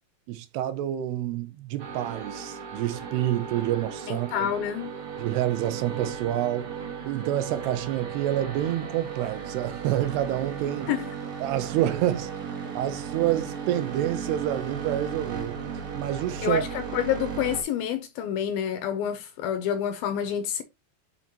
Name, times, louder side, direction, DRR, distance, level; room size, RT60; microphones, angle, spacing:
voice 1, 0.3-4.5 5.2-6.7 7.0-10.9 11.4-12.3 12.7-15.6 15.9-16.6, right 12 dB, 80° right, 2.8 m, -28 dB
sound 1, 1.8-17.6, right 6 dB, 65° right, 1.3 m, -36 dB
voice 2, 4.1-4.9 10.9-11.1 16.4-20.6, left 9 dB, 80° left, 2.2 m, -28 dB
7.1 x 5.9 x 2.9 m
omnidirectional pair, 4.8 m